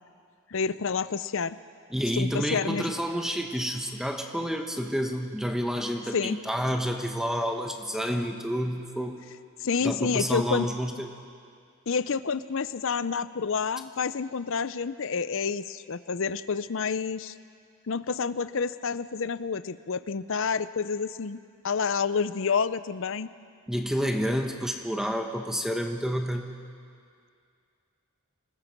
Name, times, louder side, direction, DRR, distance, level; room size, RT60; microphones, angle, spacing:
voice 1, 0.5-1.6 2.1-2.9 6.1-6.4 9.6-10.7 11.9-17.3 17.9-21.4 21.6-23.3, left 5 dB, 60° left, 15 dB, 0.6 m, -29 dB
voice 2, 1.9-9.3 9.8-11.1 23.7-26.5, equal, ahead, 4 dB, 1.1 m, -29 dB
26.0 x 20.0 x 5.3 m, 2.3 s
head